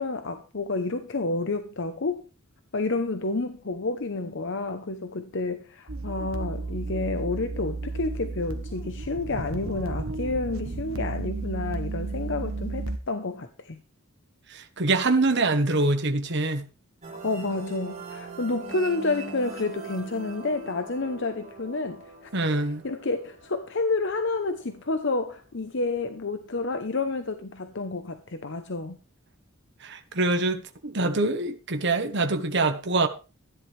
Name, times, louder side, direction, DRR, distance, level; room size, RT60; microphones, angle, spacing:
voice 1, 0.0-2.2 2.7-13.8 17.2-22.3 22.8-29.0, left 3 dB, 60° left, 0.9 m, -30 dB
sound 1, 5.9-13.0, right 3 dB, 85° right, 1.2 m, -33 dB
voice 2, 14.5-16.7 22.3-22.8 29.8-33.1, right 2 dB, 55° right, 1.3 m, -25 dB
sound 2, 17.0-24.4, right 4 dB, 35° right, 4.1 m, -42 dB
13.5 x 10.5 x 3.4 m
head